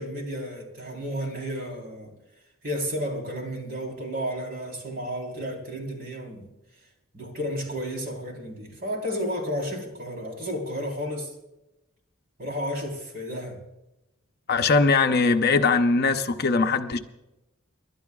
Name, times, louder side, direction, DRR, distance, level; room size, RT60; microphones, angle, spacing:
voice 1, 0.0-2.1 2.6-6.5 7.1-11.3 12.4-13.6, equal, 45° right, 3.8 m, -32 dB
voice 2, 14.5-17.0, left 4 dB, 50° left, 0.8 m, -21 dB
28.5 x 12.0 x 2.4 m
head